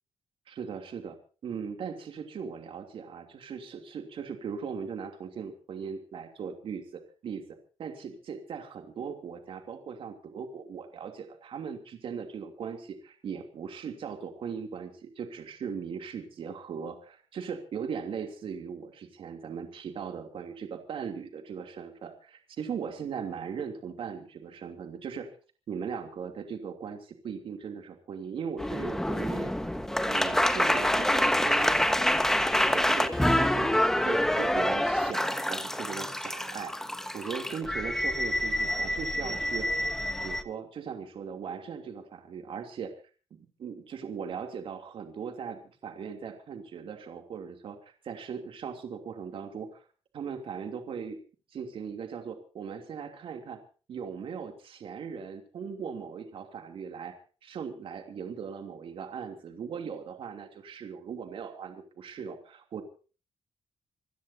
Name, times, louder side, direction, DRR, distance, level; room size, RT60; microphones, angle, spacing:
voice 1, 0.5-1.2 1.4-25.3 25.7-29.7 30.0-32.1 32.6-36.7 37.1-42.9 43.3-49.8 50.1-51.2 51.5-53.6 53.9-57.2 57.4-62.8, right 6 dB, 60° right, 5 dB, 3.0 m, -39 dB
sound 1, 28.6-40.4, left 1 dB, 5° left, 1.3 m, -27 dB
27.0 x 16.5 x 2.8 m, 0.38 s
cardioid pair, 145°, 10 cm